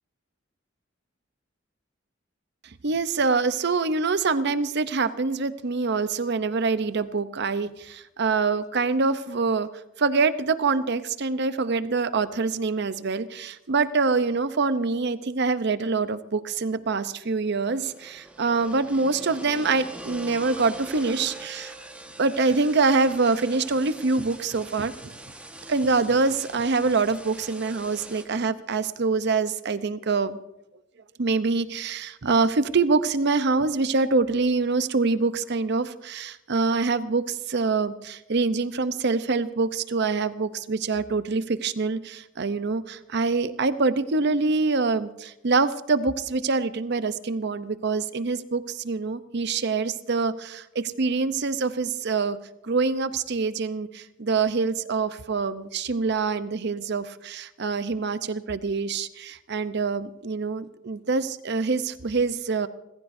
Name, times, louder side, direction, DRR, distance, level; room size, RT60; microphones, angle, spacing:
voice 1, 2.8-9.7 10.0-21.7 22.2-25.1 25.7-30.4 31.2-52.4 52.6-62.7, right 4 dB, 60° right, 13 dB, 0.7 m, -25 dB
sound 1, 17.5-28.2, right 1 dB, 5° right, 1.4 m, -43 dB
29.5 x 15.0 x 2.7 m, 0.89 s
head